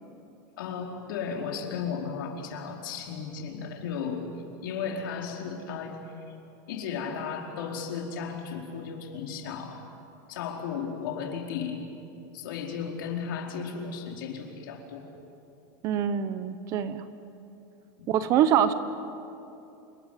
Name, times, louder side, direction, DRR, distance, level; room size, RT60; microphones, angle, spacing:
voice 1, 0.6-4.2 4.6-6.0 6.7-9.8 10.3-11.8 12.3-15.1 18.0-18.2, left 6 dB, 75° left, 1 dB, 4.5 m, -35 dB
voice 2, 15.8-17.0 18.1-18.7, right 9 dB, 30° right, 12 dB, 0.9 m, -24 dB
29.0 x 20.5 x 9.2 m, 2.7 s
supercardioid pair, 180°, 11 cm